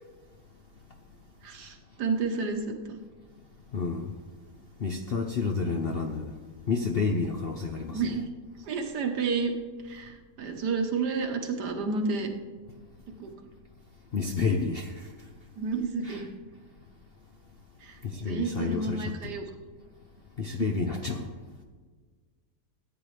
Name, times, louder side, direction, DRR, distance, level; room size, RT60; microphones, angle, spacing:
voice 1, 1.4-3.0 7.9-8.3 8.6-9.5 9.8-12.3 13.2-13.3 15.6-16.3 17.8-19.5 20.6-20.7, right 4 dB, 75° right, 4 dB, 1.6 m, -30 dB
voice 2, 3.7-4.1 4.8-6.3 6.7-8.0 14.1-15.1 16.1-16.2 18.0-19.3 20.4-21.3, left 4 dB, 60° left, 3 dB, 0.6 m, -30 dB
14.0 x 8.9 x 3.2 m, 1.5 s
omnidirectional pair, 1.8 m